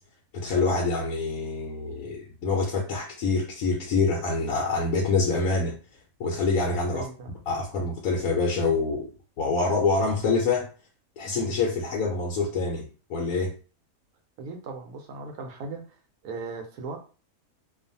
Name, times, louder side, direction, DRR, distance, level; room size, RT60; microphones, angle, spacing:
voice 1, 0.3-5.8 6.2-7.1 7.5-9.1 9.4-10.7 11.2-13.5, left 3 dB, 75° left, -1 dB, 1.0 m, -26 dB
voice 2, 6.9-7.3 14.4-15.8 16.2-17.0, right 4 dB, 80° right, 4 dB, 1.1 m, -37 dB
2.5 x 2.4 x 2.6 m, 0.35 s
omnidirectional pair, 1.6 m